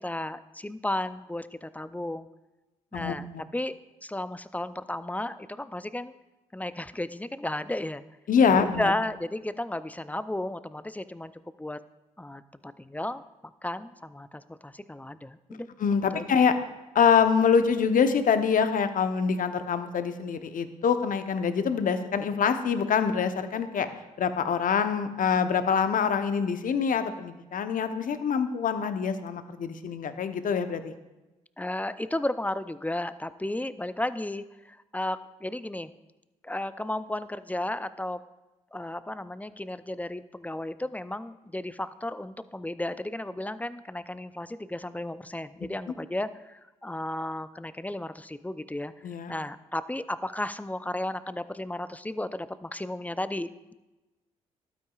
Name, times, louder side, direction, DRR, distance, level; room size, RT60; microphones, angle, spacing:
voice 1, 0.0-2.3 2.9-3.3 3.5-3.7 4.0-6.1 6.5-8.0 8.5-11.3 11.6-11.8 12.2-13.2 13.6-15.7 16.1-16.2 31.6-35.9 36.4-38.2 38.7-48.9 49.3-53.7, left 1 dB, 10° left, 14 dB, 0.5 m, -34 dB
voice 2, 8.3-8.9 15.8-16.6 16.9-23.9 24.2-30.9 49.0-49.3, left 6 dB, 50° left, 9 dB, 0.9 m, -25 dB
13.5 x 12.0 x 2.4 m, 1.1 s
hypercardioid pair, 40°, 17 cm